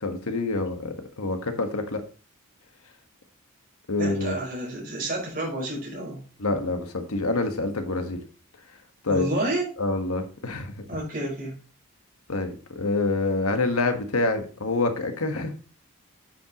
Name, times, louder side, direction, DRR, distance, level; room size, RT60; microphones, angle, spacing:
voice 1, 0.0-2.0 3.9-4.4 6.4-8.2 9.0-9.3 9.8-10.8 12.3-15.5, left 2 dB, 85° left, 6 dB, 1.5 m, -27 dB
voice 2, 4.0-6.2 9.1-9.7 10.9-11.6, right 1 dB, 40° right, -2 dB, 4.7 m, -30 dB
9.1 x 7.4 x 3.0 m, 0.38 s
head